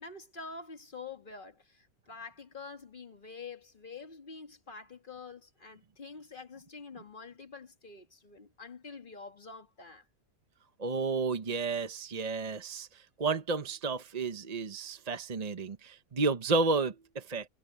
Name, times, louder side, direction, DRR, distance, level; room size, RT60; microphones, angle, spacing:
voice 1, 0.0-10.1, left 4 dB, 35° left, 1.9 m, -47 dB
voice 2, 10.8-17.5, right 4 dB, 35° right, 0.8 m, -32 dB
omnidirectional pair, 1.5 m